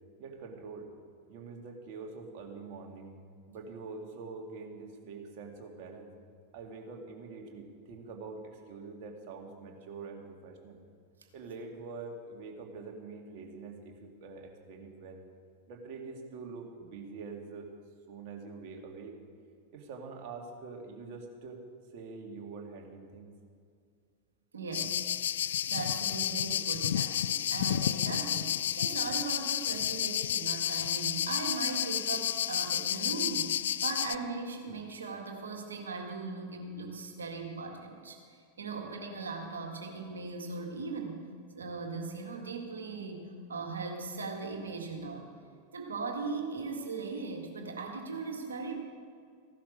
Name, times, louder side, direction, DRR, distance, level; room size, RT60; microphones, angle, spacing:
voice 1, 0.2-0.9 1.3-3.1 3.5-6.1 6.5-10.8 11.3-15.2 15.7-17.7 18.1-19.1 19.7-21.6 21.9-23.3, right 4 dB, 45° right, 2 dB, 2.2 m, -45 dB
voice 2, 24.5-41.2 41.5-45.3 45.7-48.8, right 4 dB, 75° right, 2 dB, 1.9 m, -39 dB
sound 1, 24.7-34.2, left 10 dB, 65° left, 0.3 m, -31 dB
15.5 x 11.5 x 5.2 m, 2.2 s
figure-of-eight pair, 90°, 0 cm